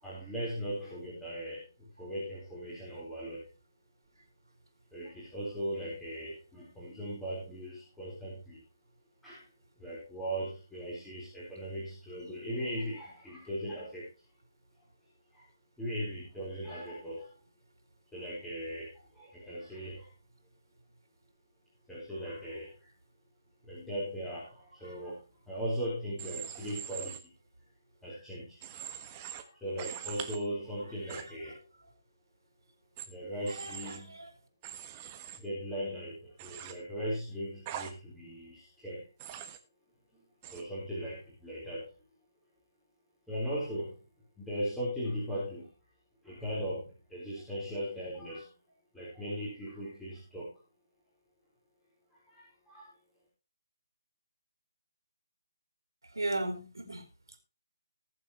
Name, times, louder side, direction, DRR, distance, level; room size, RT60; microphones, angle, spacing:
voice 1, 0.0-3.5 4.9-8.6 9.2-9.4 9.8-14.1 15.3-15.5 15.8-17.3 18.1-20.1 21.9-22.9 23.6-25.2 25.5-27.3 28.0-31.6 33.1-34.2 35.4-39.1 40.5-41.9 43.3-44.0 44.4-45.7 46.2-48.6 48.9-50.5 52.1-52.9, equal, 5° left, -8 dB, 4.0 m, -38 dB
Human voice / Train, 26.2-27.2 28.6-29.4 29.8-30.4 31.1-31.2 33.0-33.1 33.5-34.0 34.6-35.4 36.4-36.7 37.7-37.9 39.2-39.6 40.4-40.6, right 10 dB, 25° right, 1.3 m, -42 dB
voice 2, 31.0-31.9 33.4-34.3 56.0-57.4, right 2 dB, 80° right, 6 dB, 3.7 m, -38 dB
20.0 x 7.5 x 3.0 m, 0.32 s
figure-of-eight pair, 150°, 2 cm